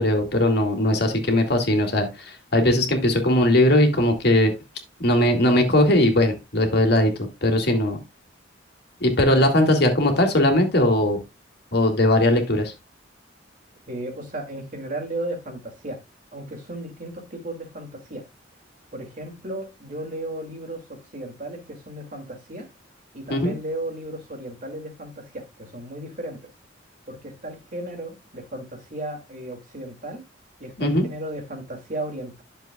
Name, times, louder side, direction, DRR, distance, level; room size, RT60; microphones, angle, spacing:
voice 1, 0.0-4.5 5.0-7.1 7.4-8.0 9.0-11.2 11.7-12.7 23.3-23.5 30.8-31.1, left 1 dB, 55° left, 2.1 m, -19 dB
voice 2, 13.9-16.0 16.3-18.3 18.9-22.7 23.1-26.5 27.1-30.2 30.6-32.4, right 1 dB, 45° right, 2.4 m, -35 dB
11.5 x 6.9 x 2.3 m
head